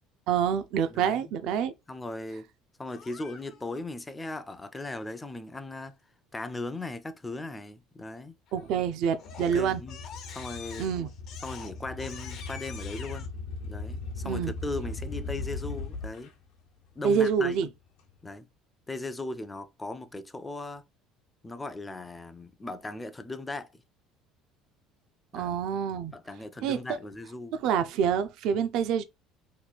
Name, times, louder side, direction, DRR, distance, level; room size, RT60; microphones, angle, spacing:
voice 1, 0.3-1.7 8.5-9.8 10.8-11.1 14.2-14.5 17.0-17.7 25.3-26.1 26.6-26.8 27.6-29.0, right 7 dB, 70° right, 0.4 m, -27 dB
voice 2, 0.9-1.2 1.9-2.5 2.8-6.0 6.3-8.4 9.4-10.0 10.3-10.9 11.4-13.3 13.6-16.3 17.0-17.6 18.2-18.5 18.9-20.8 21.4-23.8 25.3-25.6 26.1-27.6, left 2 dB, 15° left, 0.4 m, -38 dB
Crying sobbing, 2.9-3.8 8.5-8.8 9.2-13.3, left 7 dB, 60° left, 0.7 m, -46 dB
sound 1, 9.3-16.3, left 3 dB, 85° left, 0.9 m, -38 dB
3.0 x 2.3 x 4.0 m
cardioid pair, 110°, 0 cm